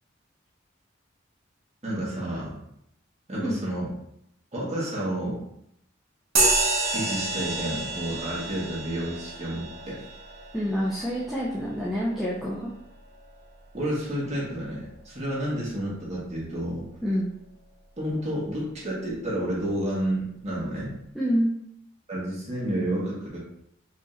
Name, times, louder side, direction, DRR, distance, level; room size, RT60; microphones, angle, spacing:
voice 1, 1.8-2.5 3.3-3.9 4.5-5.4 6.9-10.0 13.7-16.9 18.0-21.0 22.1-23.4, right 1 dB, 35° right, -6 dB, 1.5 m, -30 dB
sound 1, 6.3-14.2, right 2 dB, 55° right, 1.2 m, -30 dB
voice 2, 10.5-12.7 17.0-17.3 21.1-21.5, equal, ahead, -7 dB, 0.5 m, -27 dB
4.9 x 3.0 x 2.5 m, 0.76 s
head